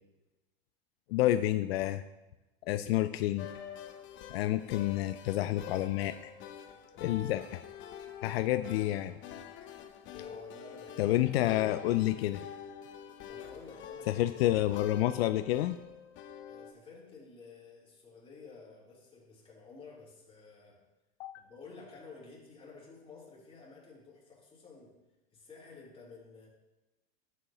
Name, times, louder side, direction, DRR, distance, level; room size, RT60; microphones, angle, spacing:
voice 1, 1.1-2.0 2.7-3.5 4.3-6.3 7.0-7.6 8.2-9.1 11.0-12.5 14.1-15.8 21.2-21.3, left 14 dB, 80° left, 11 dB, 0.5 m, -29 dB
sound 1, 3.4-16.7, left 8 dB, 40° left, 0.8 m, -46 dB
voice 2, 10.1-11.2 13.2-14.3 16.5-20.8 21.4-25.0 25.3-26.5, left 4 dB, 20° left, -5 dB, 3.5 m, -52 dB
11.5 x 8.1 x 3.0 m, 1.1 s
supercardioid pair, 120°, 30 cm